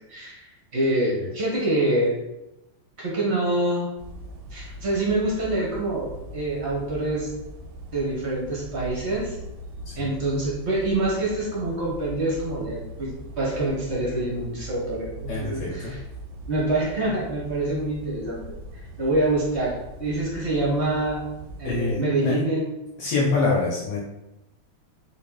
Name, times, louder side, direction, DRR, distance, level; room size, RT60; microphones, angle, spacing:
voice 1, 0.1-0.4 0.7-2.2 3.0-3.9 4.5-6.1 6.3-7.3 7.9-9.4 10.0-16.0 16.5-18.6 19.0-19.7 20.0-21.2 21.6-22.7, right 2 dB, 55° right, -5 dB, 0.7 m, -26 dB
sound 1, 4.0-22.0, equal, 75° right, 1.2 m, -40 dB
voice 2, 15.3-15.9 21.6-22.4 23.0-24.0, left 3 dB, 70° left, -4 dB, 1.2 m, -25 dB
3.7 x 2.4 x 3.6 m, 0.93 s
omnidirectional pair, 2.4 m